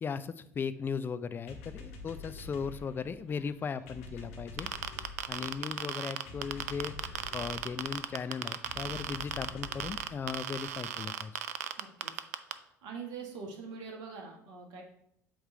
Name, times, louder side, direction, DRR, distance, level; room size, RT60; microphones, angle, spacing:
voice 1, 0.0-4.7 5.3-11.3, left 6 dB, 25° left, 12 dB, 0.4 m, -37 dB
sound 1, 1.5-11.0, left 3 dB, 65° left, 0.9 m, -48 dB
sound 2, 4.6-12.5, right 10 dB, 70° right, 0.4 m, -35 dB
voice 2, 11.8-14.8, right 5 dB, 55° right, 2 dB, 1.4 m, -44 dB
7.8 x 3.2 x 4.8 m, 0.72 s
figure-of-eight pair, 60°, 8 cm